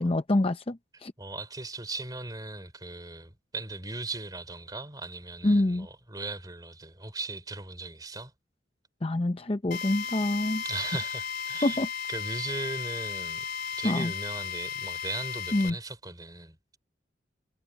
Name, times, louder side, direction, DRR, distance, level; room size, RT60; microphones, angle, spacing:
voice 1, 0.0-1.1 5.4-5.9 9.0-10.6 11.6-11.9 13.8-14.1 15.5-15.8, left 1 dB, 30° left, 0.7 m, -26 dB
voice 2, 1.2-8.3 10.6-11.8 12.1-13.5 13.8-16.6, right 2 dB, 20° right, 3.7 m, -38 dB
Drill, 9.7-15.7, left 7 dB, 55° left, 5.2 m, -35 dB
head